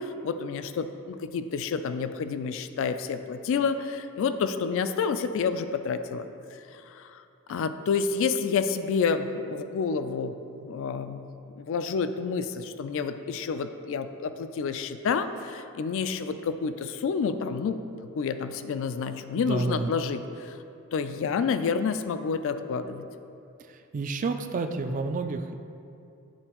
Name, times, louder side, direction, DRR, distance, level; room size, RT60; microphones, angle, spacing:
voice 1, 0.0-6.3 6.5-7.2 7.5-11.2 11.6-17.8 18.1-20.6 20.9-23.1, left 5 dB, 60° left, 10 dB, 0.3 m, -29 dB
voice 2, 19.4-19.9 23.9-25.6, right 3 dB, 35° right, 7 dB, 0.3 m, -29 dB
11.0 x 3.8 x 3.0 m, 2.7 s
head